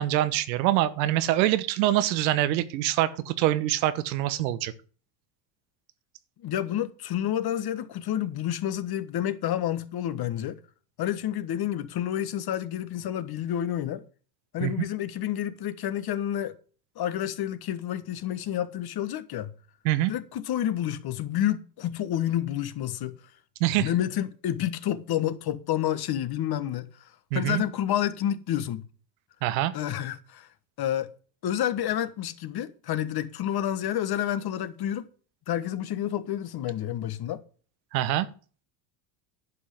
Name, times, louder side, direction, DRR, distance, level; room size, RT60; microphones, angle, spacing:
voice 1, 0.0-4.7 14.6-14.9 19.8-20.1 23.6-23.9 27.3-27.6 29.4-29.7 37.9-38.3, right 14 dB, 85° right, 1.2 m, -25 dB
voice 2, 6.4-10.6 11.0-14.0 14.5-16.5 16.9-19.5 20.1-23.2 23.8-26.9 27.3-28.9 29.7-30.5 30.8-31.1 31.4-35.1 35.5-37.4, left 11 dB, 50° left, 1.4 m, -29 dB
11.0 x 5.7 x 7.8 m
supercardioid pair, 95°, 50 cm